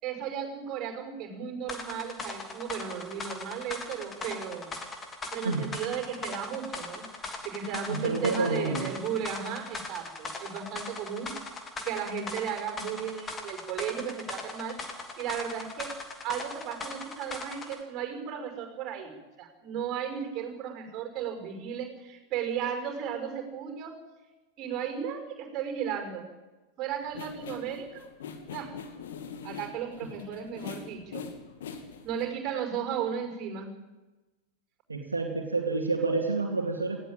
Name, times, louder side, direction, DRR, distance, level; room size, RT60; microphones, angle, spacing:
voice 1, 0.0-4.7 5.3-11.4 11.8-14.8 15.2-15.9 16.2-24.0 24.6-26.3 26.8-28.1 28.5-28.7 29.4-31.3 32.0-33.7, right 8 dB, 35° right, 4 dB, 5.8 m, -35 dB
sound 1, 1.7-17.8, left 3 dB, 20° left, 3.0 m, -40 dB
voice 2, 7.9-8.9 34.9-37.0, right 3 dB, 80° right, 1 dB, 2.4 m, -29 dB
sound 2, 27.0-32.2, left 6 dB, 60° left, 2.5 m, -42 dB
18.5 x 16.5 x 9.0 m, 1.1 s
figure-of-eight pair, 90°, 0 cm